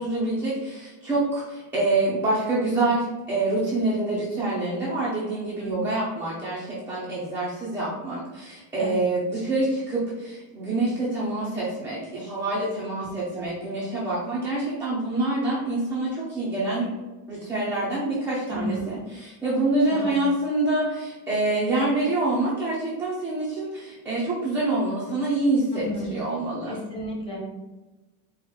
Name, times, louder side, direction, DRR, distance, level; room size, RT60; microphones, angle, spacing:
voice 1, 0.0-16.9 17.3-25.8 26.1-26.8, right 2 dB, 5° right, -9 dB, 0.3 m, -26 dB
voice 2, 8.8-9.1 12.6-12.7 13.0-13.5 18.5-19.0 19.9-20.2 25.7-26.2 26.7-27.4, equal, 10° left, -5 dB, 0.7 m, -33 dB
4.4 x 2.1 x 3.8 m, 1.1 s
cardioid pair, 175°, 44 cm